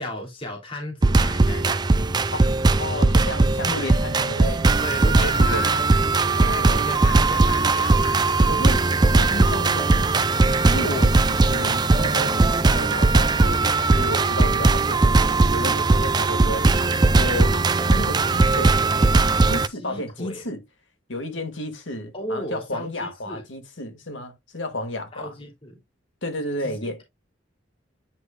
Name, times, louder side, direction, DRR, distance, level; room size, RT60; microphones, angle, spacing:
voice 1, 0.0-1.8 3.7-4.0 4.8-5.8 6.3-8.2 19.8-20.4 22.1-23.4 25.1-25.7 26.6-27.0, left 1 dB, 30° left, 3.0 m, -35 dB
sound 1, 1.0-19.7, right 3 dB, 20° right, 0.4 m, -19 dB
voice 2, 2.3-5.9 6.4-6.9 8.4-8.8 9.1-10.1 10.6-16.8 17.1-18.8 19.2-20.6 21.1-25.4 26.2-27.0, left 1 dB, 90° left, 2.0 m, -32 dB
9.6 x 5.1 x 2.3 m
head